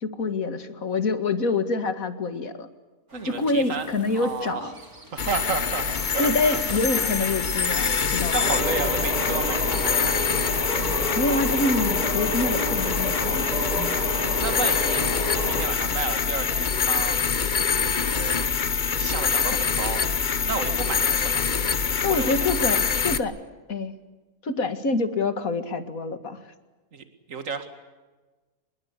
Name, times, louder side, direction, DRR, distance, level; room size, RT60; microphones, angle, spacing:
voice 1, 0.0-2.7 3.2-4.7 6.2-8.4 11.2-13.7 22.0-23.3 23.7-23.9 24.4-26.4, left 3 dB, 70° left, 9 dB, 2.3 m, -26 dB
voice 2, 3.1-3.9 4.1-4.7 5.1-6.6 8.3-10.2 14.4-15.0 15.3-17.2 17.8-18.4 18.9-20.0 20.4-21.4 22.1-22.4 26.9-27.7, right 5 dB, 60° right, 8 dB, 2.4 m, -32 dB
sound 1, 3.1-12.4, right 1 dB, 85° right, 5.1 m, -48 dB
sound 2, 5.2-23.2, left 6 dB, 35° left, 1.0 m, -25 dB
sound 3, 8.4-15.6, equal, 25° right, 8.1 m, -30 dB
25.0 x 22.0 x 8.2 m, 1.3 s
omnidirectional pair, 1.5 m